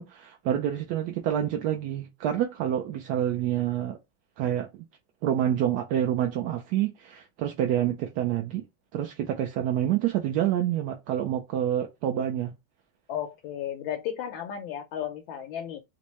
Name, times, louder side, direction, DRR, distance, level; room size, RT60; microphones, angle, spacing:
voice 1, 0.0-4.0 4.4-4.8 5.2-8.6 8.9-12.5, right 11 dB, 75° right, 1.0 m, -27 dB
voice 2, 13.1-15.8, left 10 dB, 85° left, 1.4 m, -34 dB
4.4 x 2.1 x 3.0 m
omnidirectional pair, 2.1 m